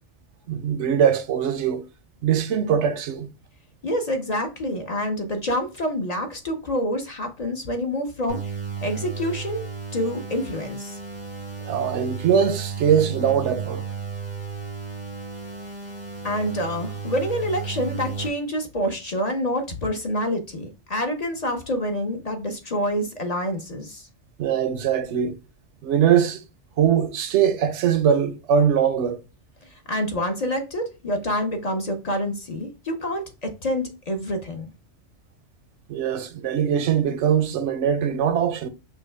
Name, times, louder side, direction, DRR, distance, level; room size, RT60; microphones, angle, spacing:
voice 1, 0.5-1.9 2.2-3.3 11.6-13.8 24.4-25.4 25.8-26.4 26.8-29.2 35.9-38.7, right 8 dB, 80° right, 0.9 m, -21 dB
voice 2, 3.8-8.5 8.8-9.6 9.9-11.0 16.2-24.1 29.6-34.7, equal, 40° left, 0.7 m, -27 dB
sound 1, 8.3-18.3, right 5 dB, 85° left, 2.1 m, -34 dB
6.1 x 2.2 x 3.3 m
omnidirectional pair, 1.2 m